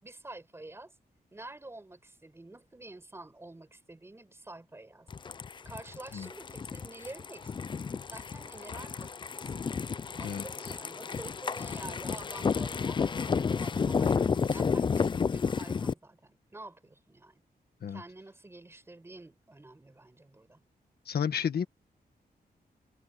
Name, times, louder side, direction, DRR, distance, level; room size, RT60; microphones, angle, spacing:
voice 1, 0.0-0.9 1.3-5.1 5.6-7.7 8.1-9.7 10.1-17.4 17.9-20.6, right 2 dB, 15° right, 4.8 m, -48 dB
sound 1, 5.1-15.9, left 5 dB, 30° left, 0.4 m, -31 dB
voice 2, 10.2-10.7 17.8-18.0 21.0-21.6, left 7 dB, 75° left, 1.6 m, -32 dB
wide cardioid pair, 165°, 16 cm